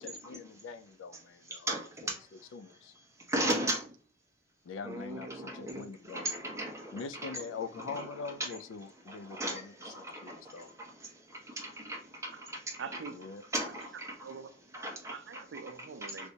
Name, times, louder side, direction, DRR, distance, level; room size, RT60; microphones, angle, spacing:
voice 1, 0.0-2.1 2.5-2.9 4.6-6.3 6.9-9.7 10.2-10.7 13.1-13.4, left 5 dB, 75° left, 0.3 m, -43 dB
voice 2, 1.5-2.2 3.3-3.9 4.8-7.4 7.9-8.1 9.1-10.4 11.6-12.6 13.5-14.1 14.7-15.1 16.0-16.3, right 1 dB, 15° right, 0.8 m, -36 dB
voice 3, 12.8-13.3 14.1-14.6 15.1-16.3, right 5 dB, 60° right, 0.4 m, -44 dB
3.3 x 2.7 x 2.7 m
head